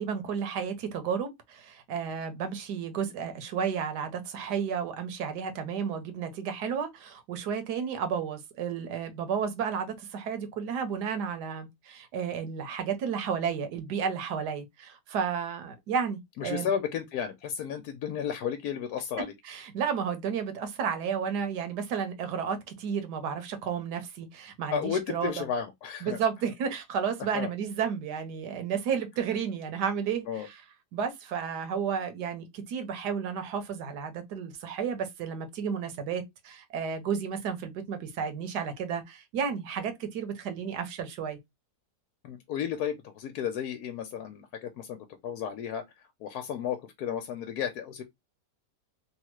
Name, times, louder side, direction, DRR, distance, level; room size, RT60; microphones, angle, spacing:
voice 1, 0.0-16.7 19.5-25.4 26.0-30.5 30.9-41.4, right 7 dB, 75° right, 1.4 m, -32 dB
voice 2, 16.4-19.3 24.7-26.2 27.3-27.5 30.3-30.5 42.2-48.0, left 8 dB, 75° left, 1.1 m, -33 dB
3.4 x 2.4 x 3.0 m
omnidirectional pair, 1.8 m